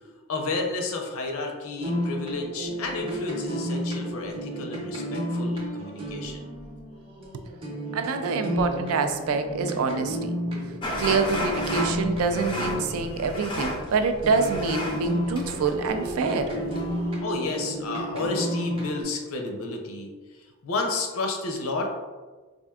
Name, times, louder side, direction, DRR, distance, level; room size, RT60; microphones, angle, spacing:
voice 1, 0.3-6.5 13.1-13.2 17.2-20.1 20.6-22.0, left 3 dB, 75° left, 2 dB, 0.6 m, -31 dB
sound 1, 1.8-13.8 14.2-19.0, equal, 25° right, 0.6 m, -32 dB
voice 2, 7.9-10.4 11.0-16.5, right 4 dB, 80° right, 8 dB, 0.3 m, -26 dB
sound 2, 10.8-17.1, left 1 dB, 20° left, 0.4 m, -33 dB
4.3 x 2.5 x 2.3 m, 1.3 s
head